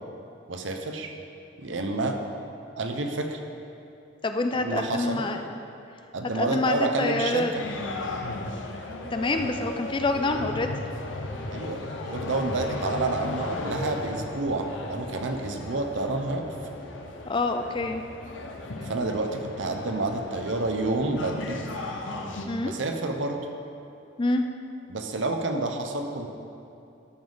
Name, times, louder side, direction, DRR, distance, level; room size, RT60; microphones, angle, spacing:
voice 1, 0.5-1.1 1.6-2.2 2.8-3.4 4.5-5.2 6.1-7.6 11.5-11.8 12.1-16.5 18.8-21.6 22.6-23.4 24.9-26.3, right 2 dB, 75° right, 4 dB, 0.7 m, -29 dB
voice 2, 4.2-5.4 6.3-7.5 9.1-10.7 17.3-18.0 22.5-22.7 24.2-24.4, left 2 dB, 25° left, 6 dB, 0.4 m, -26 dB
sound 1, 7.6-22.5, left 2 dB, 80° left, 0.8 m, -36 dB
12.5 x 5.3 x 3.9 m, 2.7 s
head